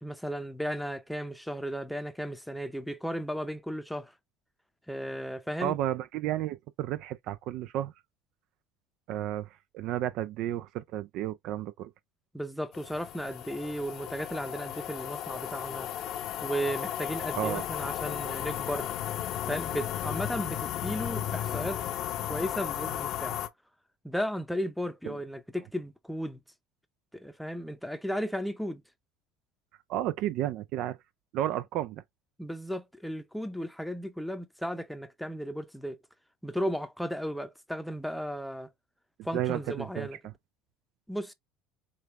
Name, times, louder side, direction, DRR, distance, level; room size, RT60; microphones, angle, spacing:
voice 1, 0.0-4.1 4.9-5.8 12.3-15.9 16.4-18.9 19.5-21.9 22.3-23.4 24.0-26.4 27.1-28.8 32.4-36.0 36.4-38.7 39.2-40.2 41.1-41.3, equal, ahead, 0.6 m, -35 dB
voice 2, 5.6-7.9 9.1-11.9 17.4-17.7 25.0-25.2 29.9-31.0 31.3-32.0 39.3-40.3, right 12 dB, 65° right, 0.3 m, -32 dB
sound 1, 12.7-23.5, left 11 dB, 55° left, 0.7 m, -35 dB
5.1 x 2.4 x 3.1 m
supercardioid pair, 100°, 0 cm